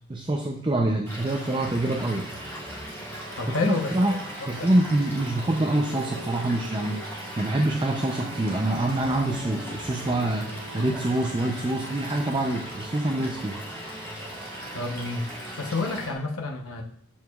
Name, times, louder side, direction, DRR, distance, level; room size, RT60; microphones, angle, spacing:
voice 1, 0.1-2.4 3.5-4.2 4.5-7.0 7.4-13.6, right 1 dB, 25° right, 1 dB, 0.5 m, -25 dB
Stream / Liquid, 1.1-16.1, equal, 10° left, 1.7 m, -40 dB
sound 1, 1.4-16.1, right 2 dB, 85° right, 2.8 m, -43 dB
voice 2, 3.4-4.2 4.5-4.7 14.7-15.3 15.6-16.8, left 3 dB, 80° left, 2 dB, 0.9 m, -29 dB
sound 2, 4.5-10.9, left 1 dB, 55° right, 1.1 m, -43 dB
12.5 x 4.8 x 2.4 m, 0.64 s
head